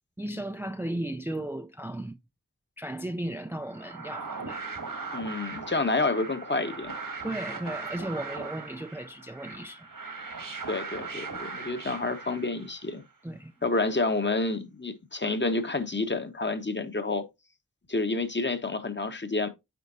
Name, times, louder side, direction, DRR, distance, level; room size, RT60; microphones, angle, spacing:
voice 1, 0.2-2.2 2.8-4.6 7.2-9.9 13.2-13.5, right 1 dB, 5° right, 0.4 m, -35 dB
sound 1, 3.6-12.9, right 4 dB, 80° right, 2.0 m, -39 dB
voice 2, 5.1-6.9 10.7-13.0 13.6-17.2 17.9-19.5, left 3 dB, 35° left, 1.2 m, -29 dB
9.3 x 5.1 x 2.7 m
wide cardioid pair, 55°, 33 cm